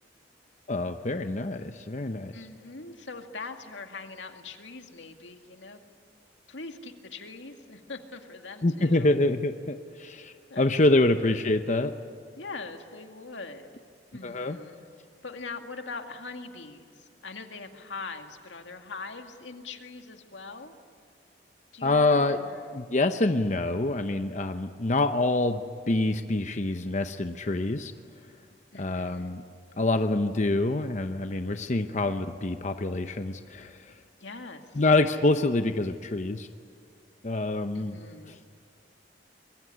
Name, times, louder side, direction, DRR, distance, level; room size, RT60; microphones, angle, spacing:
voice 1, 0.7-2.3 8.6-11.9 14.2-14.6 21.8-22.4 22.7-27.9 28.8-29.4 29.8-33.9 34.7-36.5 37.2-38.0 38.3-38.4, left 2 dB, 40° left, 8 dB, 0.8 m, -26 dB
voice 2, 2.3-5.8 6.5-9.1 10.5-11.2 12.4-13.8 14.1-14.8 15.2-20.8 21.7-22.8 28.7-29.4 34.2-34.8 37.7-38.4, left 3 dB, 85° left, 5 dB, 2.2 m, -42 dB
25.0 x 22.5 x 9.9 m, 2.1 s
head